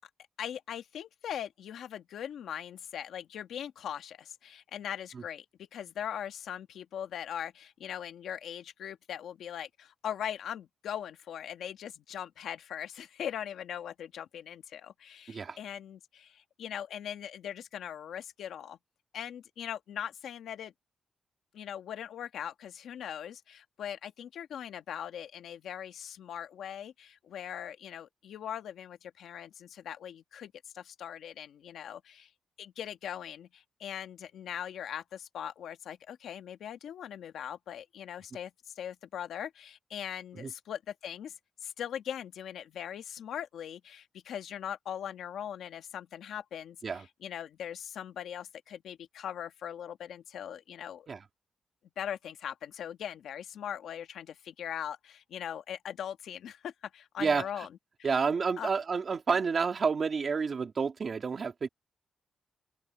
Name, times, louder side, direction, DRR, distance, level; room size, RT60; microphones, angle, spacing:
voice 1, 0.4-18.8 19.1-20.7 21.5-32.3 32.6-38.5 38.8-41.3 41.6-51.1 52.0-57.7 58.2-58.3 58.6-58.7, left 9 dB, 80° left, 1.8 m, -40 dB
voice 2, 15.3-15.6 40.4-40.5 46.8-47.0 51.1-51.2 57.2-57.5 58.0-61.7, right 5 dB, 35° right, 2.6 m, -29 dB
open air
wide cardioid pair, 180°, 0 cm